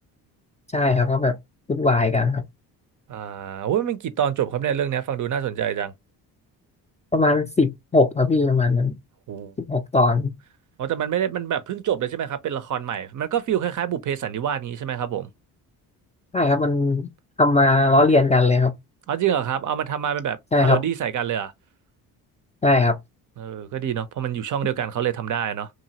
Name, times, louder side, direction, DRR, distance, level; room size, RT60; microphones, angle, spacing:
voice 1, 0.7-1.4 1.7-2.4 7.1-9.0 9.6-10.3 16.3-17.1 17.4-18.7 20.5-20.8 22.6-23.0, left 3 dB, 15° left, 0.4 m, -19 dB
voice 2, 3.1-5.9 9.3-9.5 10.8-15.3 19.1-21.5 23.4-25.7, right 9 dB, 45° right, 0.5 m, -26 dB
2.8 x 2.4 x 2.8 m
hypercardioid pair, 60°, 44 cm